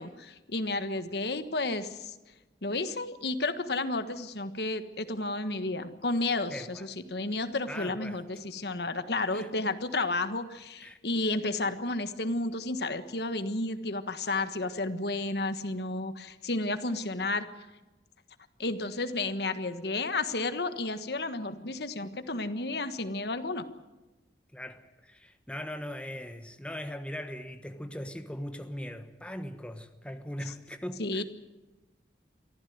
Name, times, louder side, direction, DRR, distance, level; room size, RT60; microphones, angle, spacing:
voice 1, 0.0-2.1 2.6-17.5 18.6-23.7 31.0-31.2, left 2 dB, 65° left, 10 dB, 1.4 m, -32 dB
voice 2, 6.5-6.9 7.7-8.2 9.3-9.5 10.8-11.0 24.5-31.2, equal, 5° left, 7 dB, 1.2 m, -40 dB
24.0 x 15.0 x 9.4 m, 1.1 s
head